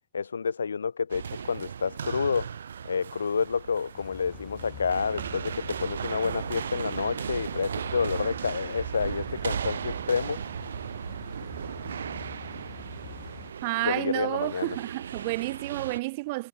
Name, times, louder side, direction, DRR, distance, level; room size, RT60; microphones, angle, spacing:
voice 1, 0.1-2.5 2.8-10.4 13.8-14.8, left 6 dB, 75° left, 0.5 m, -29 dB
sound 1, 1.1-16.0, right 7 dB, 70° right, 1.6 m, -36 dB
sound 2, 3.9-13.5, left 15 dB, 35° left, 1.3 m, -47 dB
voice 2, 13.6-16.5, right 22 dB, 50° right, 0.7 m, -30 dB
figure-of-eight pair, 90°, 0 cm